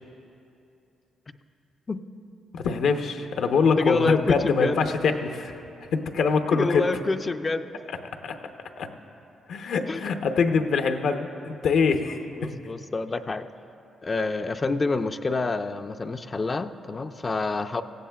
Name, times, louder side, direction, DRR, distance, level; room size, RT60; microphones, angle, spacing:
voice 1, 2.5-5.6 5.9-6.8 7.9-8.0 8.2-8.4 8.8-8.9 9.5-12.5, left 5 dB, 75° left, 6 dB, 0.7 m, -24 dB
voice 2, 3.8-4.8 6.5-7.8 9.9-10.1 12.4-13.5 14.0-17.8, left 3 dB, 30° left, 9 dB, 0.4 m, -27 dB
17.5 x 15.5 x 2.3 m, 2.8 s
cardioid pair, 105°, 0 cm